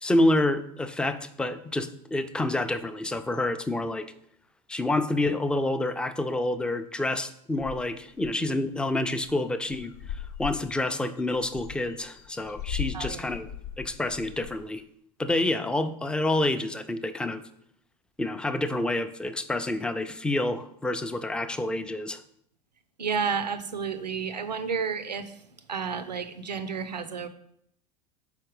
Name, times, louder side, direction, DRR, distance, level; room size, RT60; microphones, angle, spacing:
voice 1, 0.0-4.1 4.7-13.5 13.8-14.8 15.2-17.4 18.2-22.2, left 2 dB, 5° left, 9 dB, 0.3 m, -28 dB
sound 1, 7.6-8.4 8.8-8.9 9.1-9.4 9.7-14.7, left 8 dB, 70° left, 0.6 m, -39 dB
voice 2, 12.9-13.3 23.0-25.3 25.7-27.3, right 6 dB, 90° right, 12 dB, 0.5 m, -31 dB
4.9 x 4.2 x 4.7 m, 0.71 s
figure-of-eight pair, 80°, 21 cm